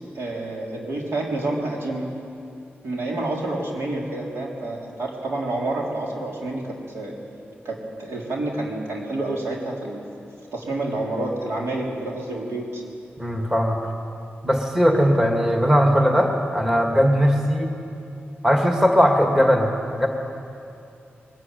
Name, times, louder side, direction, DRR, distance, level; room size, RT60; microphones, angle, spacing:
voice 1, 0.0-2.0 2.8-6.6 6.9-7.2 7.6-10.0 10.5-12.8, right 2 dB, 85° right, -2 dB, 3.9 m, -28 dB
voice 2, 13.2-13.8 14.4-17.7 18.4-20.1, equal, 10° right, 2 dB, 2.1 m, -19 dB
21.5 x 14.5 x 9.2 m, 2.6 s
wide cardioid pair, 110°, 4 cm